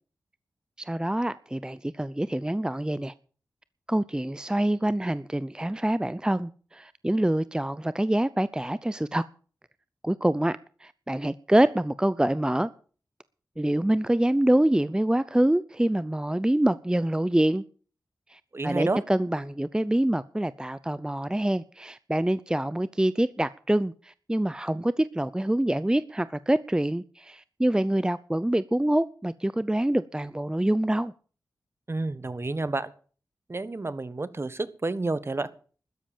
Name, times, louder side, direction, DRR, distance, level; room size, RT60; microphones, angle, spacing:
voice 1, 0.8-3.1 3.9-9.3 10.0-12.7 13.6-17.6 18.3-31.1, right 1 dB, 10° right, 0.6 m, -26 dB
voice 2, 18.5-19.0 31.9-32.9 33.5-35.5, right 2 dB, 40° right, 1.4 m, -30 dB
13.0 x 9.9 x 7.3 m
cardioid pair, 50°, 7 cm